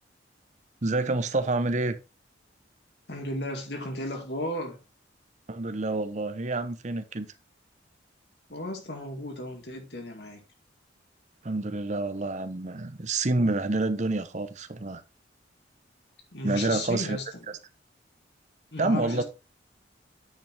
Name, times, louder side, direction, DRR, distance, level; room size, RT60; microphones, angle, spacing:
voice 1, 0.8-2.0 5.5-7.3 11.4-15.0 16.4-17.2 18.8-19.2, right 2 dB, 40° right, 0.8 m, -28 dB
voice 2, 3.1-4.8 8.5-10.4 16.3-17.5 18.7-19.2, left 1 dB, 65° left, 2.1 m, -34 dB
9.2 x 5.9 x 3.4 m
head